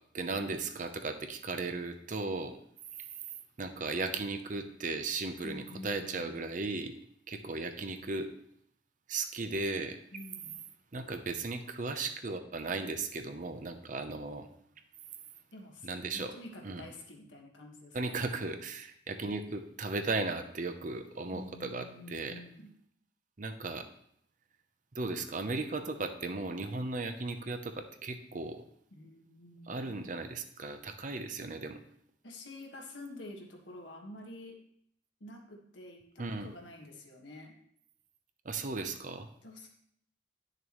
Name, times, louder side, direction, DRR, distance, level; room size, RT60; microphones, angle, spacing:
voice 1, 0.1-2.6 3.6-6.9 7.3-8.3 9.1-10.0 10.9-14.5 15.8-16.3 16.6-16.8 17.9-22.4 23.4-23.9 24.9-28.6 29.7-31.8 36.2-36.5 38.4-39.3, right 3 dB, 45° right, 8 dB, 0.7 m, -36 dB
voice 2, 5.4-6.4 10.1-10.6 15.5-18.2 21.3-22.7 28.9-30.1 32.2-34.6 35.2-37.6 39.4-39.7, left 1 dB, 75° left, 1 dB, 1.6 m, -48 dB
10.5 x 6.7 x 3.1 m, 0.68 s
head